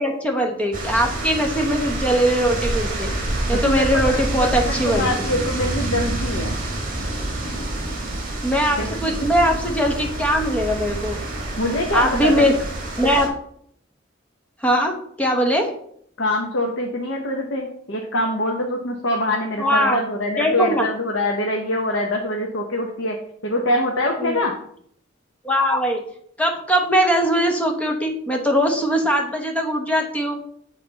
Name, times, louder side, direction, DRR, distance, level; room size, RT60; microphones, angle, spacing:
voice 1, 0.0-3.1 3.5-5.1 8.4-11.2 11.9-12.6 13.0-13.3 14.6-15.7 19.6-20.0 20.4-20.9 24.2-24.4 25.4-26.0 26.4-30.4, equal, 5° left, 2 dB, 0.9 m, -21 dB
sound 1, 0.7-13.3, right 1 dB, 45° right, 1.5 m, -27 dB
voice 2, 3.5-6.6 8.8-9.1 11.6-12.5 16.2-23.2 23.4-24.5, left 1 dB, 80° left, 1 dB, 0.9 m, -24 dB
7.2 x 4.2 x 4.0 m, 0.65 s
head